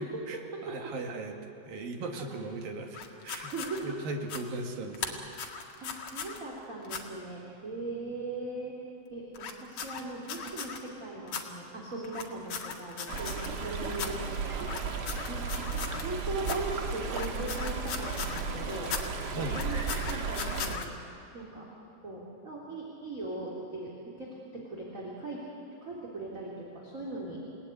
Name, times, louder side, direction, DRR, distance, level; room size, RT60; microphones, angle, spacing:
voice 1, 0.0-1.3 1.7-3.0 3.2-3.5 3.8-5.3 19.3-19.6, right 2 dB, 75° right, 3 dB, 3.7 m, -38 dB
voice 2, 2.0-2.5 3.3-4.0 5.8-8.8 9.1-14.7 14.9-15.6 16.0-18.9 19.3-20.9 21.3-21.7 22.0-25.4 25.8-27.4, right 2 dB, 25° right, -4 dB, 3.3 m, -39 dB
sound 1, 2.9-3.8 4.2-4.4 4.9-6.4 6.8-7.0 9.3-10.8 11.3-11.4 12.0-13.6 13.9-14.1 14.6-16.1 16.4-16.6 17.0-18.5 18.8-19.0 19.4-20.9, left 6 dB, 50° left, 2.7 m, -38 dB
Stream, 13.1-20.8, right 4 dB, 50° right, 1.2 m, -34 dB
29.5 x 18.5 x 9.7 m, 2.7 s
omnidirectional pair, 4.2 m